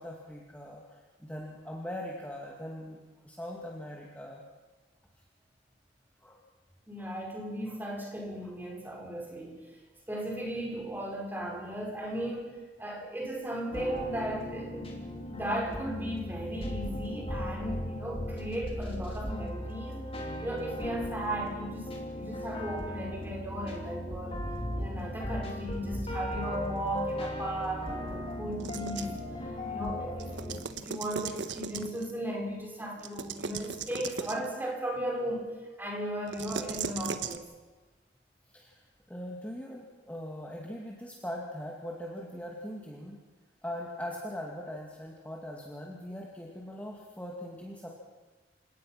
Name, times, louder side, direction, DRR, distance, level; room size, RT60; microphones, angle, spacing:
voice 1, 0.0-3.0 3.2-4.4 6.2-6.4 7.0-7.1 7.7-7.8 8.4-8.5 38.5-38.8 39.1-43.2 43.6-47.9, equal, 10° left, -2 dB, 2.3 m, -41 dB
voice 2, 6.9-9.6 10.1-15.0 15.3-20.1 20.4-24.4 24.8-29.2 29.7-37.4, right 1 dB, 10° right, -1 dB, 5.5 m, -36 dB
sound 1, 13.7-30.6, left 1 dB, 35° left, 3.4 m, -37 dB
sound 2, 28.6-29.2 30.2-32.1 33.0-34.5 36.3-37.4, right 5 dB, 85° right, 1.3 m, -38 dB
29.0 x 18.0 x 6.0 m, 1.3 s
head